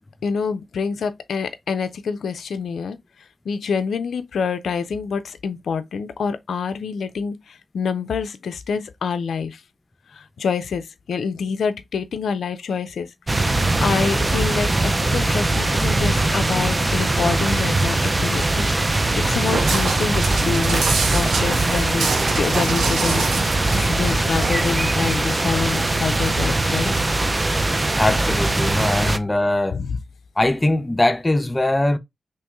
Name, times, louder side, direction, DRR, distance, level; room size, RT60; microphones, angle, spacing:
voice 1, 0.2-3.0 3.5-9.6 10.1-18.7 19.2-20.9 21.1-27.0 29.1-29.2 29.7-30.0, left 6 dB, 75° left, 0.4 m, -27 dB
sound 1, 13.3-29.2, right 2 dB, 30° right, 0.5 m, -21 dB
Walk footsteps, 18.9-24.7, right 4 dB, 80° right, 0.7 m, -27 dB
voice 2, 28.0-29.8 30.4-32.0, left 1 dB, 25° left, 0.6 m, -21 dB
2.9 x 2.8 x 3.5 m
supercardioid pair, 40°, 0 cm